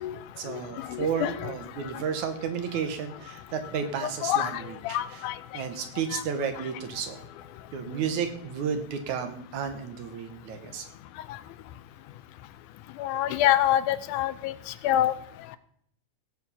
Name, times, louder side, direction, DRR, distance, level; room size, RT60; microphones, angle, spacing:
voice 1, 0.4-5.2 5.5-7.2 7.7-10.9, right 7 dB, 70° right, 8 dB, 2.6 m, -32 dB
voice 2, 0.9-1.5 4.0-4.6 4.9-5.3 6.1-6.2 13.0-14.5 14.8-15.1, left 12 dB, 80° left, 14 dB, 2.1 m, -26 dB
16.5 x 7.6 x 5.6 m, 0.67 s
omnidirectional pair, 3.6 m